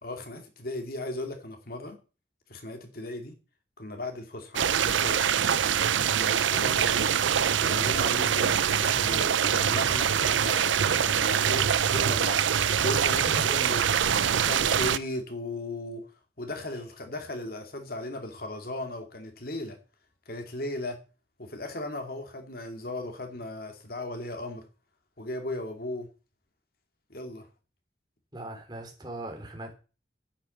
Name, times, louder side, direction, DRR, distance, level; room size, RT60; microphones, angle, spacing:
voice 1, 0.0-2.0 2.5-3.4 3.8-5.4 6.1-7.2 7.6-13.8 14.3-16.0 16.4-19.8 20.3-21.0 21.4-24.6 25.2-26.1 27.1-27.5, left 1 dB, 50° left, 2.5 m, -37 dB
sound 1, 4.6-15.0, right 8 dB, 85° right, 0.6 m, -24 dB
voice 2, 13.1-13.6 28.3-29.7, right 1 dB, 25° right, 3.8 m, -39 dB
10.0 x 8.5 x 7.2 m
head